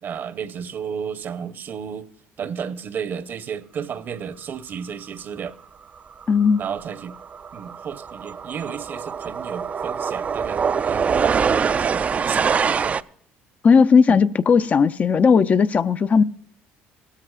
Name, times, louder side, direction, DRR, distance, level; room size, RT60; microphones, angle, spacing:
voice 1, 0.0-2.1 2.4-5.6 6.6-7.2 7.5-13.0 14.1-14.2, right 7 dB, 50° right, 0.8 m, -32 dB
sound 1, 6.2-6.4 6.7-13.0, right 6 dB, 35° right, 0.4 m, -24 dB
voice 2, 6.3-6.6 13.6-16.2, left 5 dB, 35° left, 0.4 m, -16 dB
17.0 x 13.0 x 2.4 m
cardioid pair, 100°, 4 cm